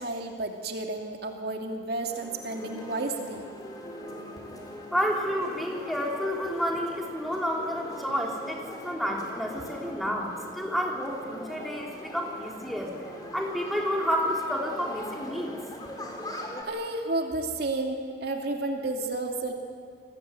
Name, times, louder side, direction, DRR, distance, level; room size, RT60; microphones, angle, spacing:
voice 1, 0.0-3.4 16.7-19.5, right 2 dB, 55° right, 2 dB, 2.7 m, -31 dB
sound 1, 2.0-16.6, left 1 dB, 20° left, 4.1 m, -41 dB
voice 2, 4.9-13.0 13.3-15.6, equal, ahead, -1 dB, 3.6 m, -30 dB
28.5 x 20.5 x 9.8 m, 2.1 s
head